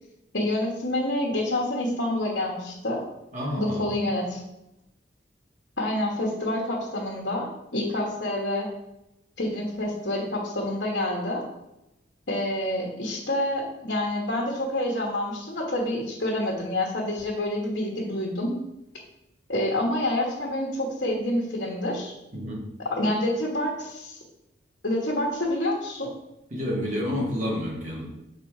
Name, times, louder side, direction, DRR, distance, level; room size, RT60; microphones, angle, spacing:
voice 1, 0.3-3.0 3.6-4.4 5.8-8.7 9.4-11.4 12.3-18.5 19.5-22.1 22.9-24.2 24.8-26.1, left 1 dB, 65° left, -4 dB, 1.3 m, -27 dB
voice 2, 3.3-3.9 22.3-22.6 26.5-28.1, left 1 dB, 40° right, -3 dB, 1.8 m, -29 dB
6.1 x 4.2 x 4.8 m, 0.89 s
head